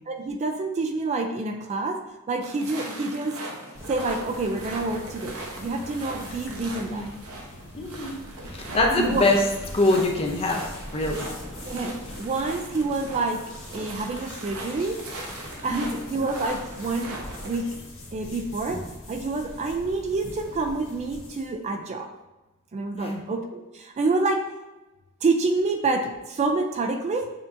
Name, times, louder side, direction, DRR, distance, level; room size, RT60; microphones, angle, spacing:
voice 1, 0.1-3.4 3.9-7.1 8.9-9.2 11.6-13.4 13.7-15.0 15.6-17.7 18.1-22.1 22.7-24.5 25.2-27.3, right 3 dB, 30° right, 6 dB, 0.3 m, -28 dB
sound 1, 2.4-17.6, right 2 dB, 85° right, 0.8 m, -39 dB
sound 2, 3.7-21.5, left 1 dB, 65° left, 1.1 m, -42 dB
voice 2, 7.7-8.1 8.5-9.4 9.7-11.3 15.7-16.0 22.9-23.2, left 2 dB, 25° left, 1 dB, 0.5 m, -24 dB
6.7 x 2.7 x 2.5 m, 1.1 s
head